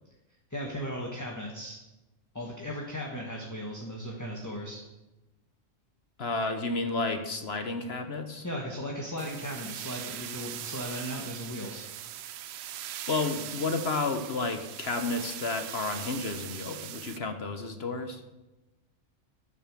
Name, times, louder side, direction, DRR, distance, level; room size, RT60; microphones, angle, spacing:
voice 1, 0.5-1.8 2.3-4.8 8.4-11.9, equal, 15° left, -1 dB, 1.5 m, -37 dB
voice 2, 6.2-8.4 13.1-18.2, left 3 dB, 55° left, 7 dB, 1.3 m, -31 dB
sound 1, 9.2-17.2, right 11 dB, 65° right, 0.7 m, -40 dB
12.5 x 6.7 x 7.5 m, 1.0 s
omnidirectional pair, 1.3 m